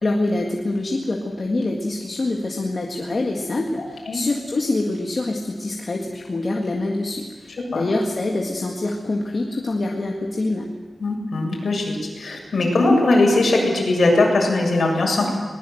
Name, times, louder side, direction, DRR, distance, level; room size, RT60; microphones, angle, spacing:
voice 1, 0.0-10.7, left 2 dB, 35° left, 0 dB, 1.9 m, -25 dB
voice 2, 11.0-15.3, left 2 dB, 55° left, 0 dB, 7.3 m, -19 dB
22.0 x 20.5 x 7.9 m, 1.4 s
wide cardioid pair, 170°, 0 cm